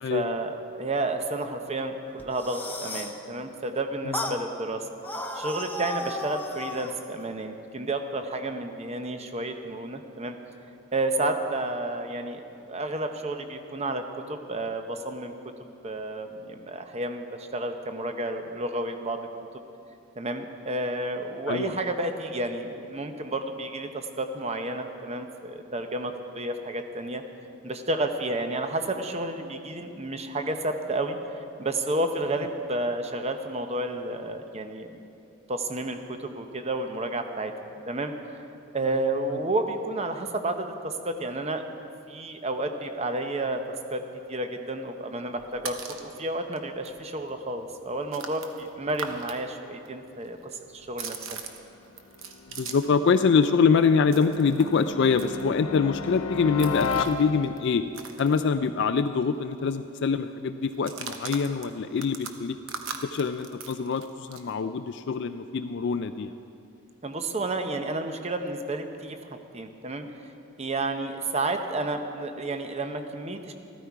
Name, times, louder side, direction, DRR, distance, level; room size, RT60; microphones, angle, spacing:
voice 1, 0.0-4.8 5.3-10.4 10.9-12.4 12.7-14.0 14.3-15.3 15.6-19.3 20.2-27.2 27.6-31.2 31.6-34.9 35.5-37.5 37.9-38.4 38.7-41.6 42.1-43.6 43.9-44.0 44.3-50.4 50.7-51.4 67.0-69.2 69.5-70.1 70.6-73.5, right 2 dB, 30° right, 6 dB, 0.7 m, -31 dB
sound 1, 2.2-3.2 4.1-4.4 5.0-7.0, left 2 dB, 10° left, 0.7 m, -34 dB
sound 2, 45.4-46.1 46.6-46.7 46.8-49.4 49.6-53.0 53.3-59.0 59.2-59.4 59.6-60.0 60.7-64.5, right 5 dB, 65° right, 1.0 m, -41 dB
sound 3, 51.4-57.8, left 5 dB, 90° left, 0.6 m, -35 dB
voice 2, 52.6-57.8 58.2-62.6 63.0-66.3, left 5 dB, 55° left, 9 dB, 0.3 m, -24 dB
14.0 x 13.5 x 4.7 m, 2.7 s
head